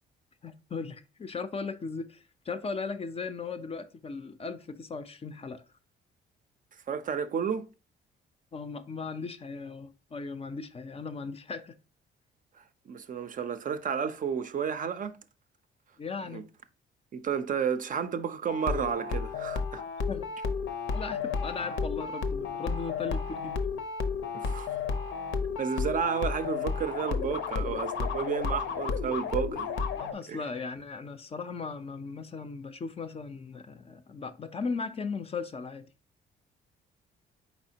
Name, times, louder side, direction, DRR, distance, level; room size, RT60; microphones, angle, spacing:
voice 1, 0.4-5.6 8.5-11.7 16.0-16.5 20.1-20.3 20.9-23.7 30.0-35.9, left 4 dB, 30° left, 0.4 m, -37 dB
voice 2, 6.9-7.7 12.6-15.2 16.3-16.4 17.1-19.8 24.3-24.7 25.6-29.7 30.3-30.4, right 7 dB, 45° right, 0.4 m, -32 dB
sound 1, 18.5-30.1, left 5 dB, 80° left, 0.6 m, -32 dB
4.3 x 4.1 x 2.7 m
cardioid pair, 90°, 20 cm